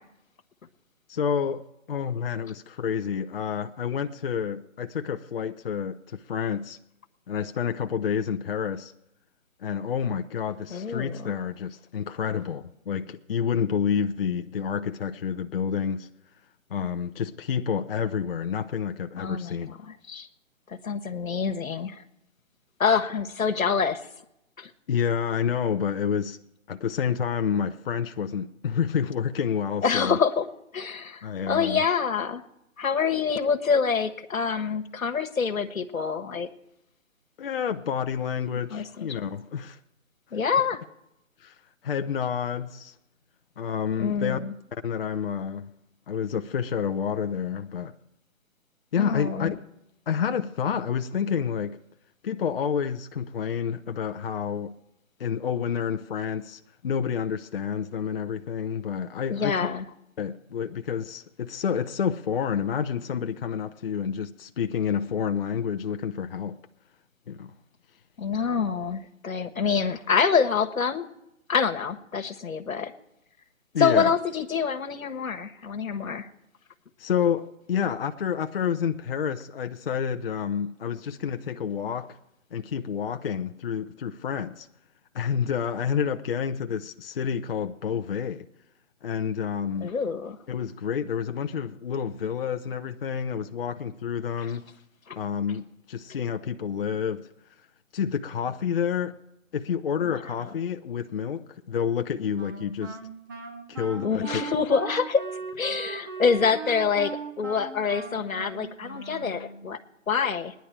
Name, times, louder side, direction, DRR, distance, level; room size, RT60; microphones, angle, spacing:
voice 1, 1.1-6.8 7.3-8.9 9.6-16.1 16.7-19.8 24.9-26.4 26.7-30.2 31.2-31.9 37.4-39.8 41.4-41.5 41.8-42.9 43.6-44.4 44.8-45.7 46.1-47.9 48.9-49.5 50.1-51.8 52.2-54.8 55.2-59.7 60.2-66.6 67.3-67.5 73.7-74.1 77.0-82.2 82.5-84.7 85.1-88.5 89.0-89.9 90.5-94.6 95.1-97.3 97.9-99.2 99.5-103.0 103.7-104.4, left 7 dB, 45° left, 0.6 m, -29 dB
voice 2, 10.7-11.3 19.2-20.3 20.7-22.0 22.8-24.0 24.6-24.7 29.8-30.5 30.7-32.4 32.8-36.5 38.7-39.3 40.3-40.8 44.0-44.5 49.0-49.5 59.3-59.8 68.2-71.1 71.5-72.9 73.8-76.3 89.8-90.4 95.1-95.2 100.1-100.3 104.0-105.2 105.6-109.8 110.1-110.5, left 6 dB, 85° left, 1.3 m, -26 dB
Wind instrument woodwind instrument, 102.4-109.8, right 5 dB, 15° right, 0.7 m, -38 dB
19.5 x 10.0 x 4.6 m
figure-of-eight pair, 150°, 40 cm